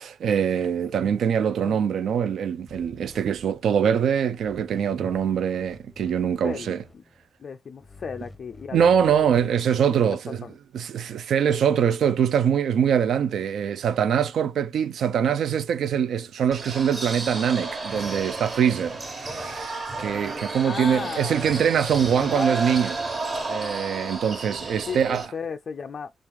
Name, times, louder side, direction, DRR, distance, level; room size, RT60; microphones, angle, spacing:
voice 1, 0.0-6.8 8.7-10.4 10.7-23.0 23.5-25.2, right 8 dB, 75° right, 0.4 m, -23 dB
sound 1, 2.7-4.1 4.4-7.3 7.8-9.5, left 2 dB, 10° left, 0.6 m, -48 dB
voice 2, 6.4-7.0 7.4-9.5 9.9-10.5 20.6-21.6 22.1-22.5 24.9-26.1, left 6 dB, 45° left, 0.3 m, -35 dB
sound 2, 16.5-25.2, right 3 dB, 30° right, 1.2 m, -32 dB
4.7 x 2.4 x 3.4 m
wide cardioid pair, 150°, 0 cm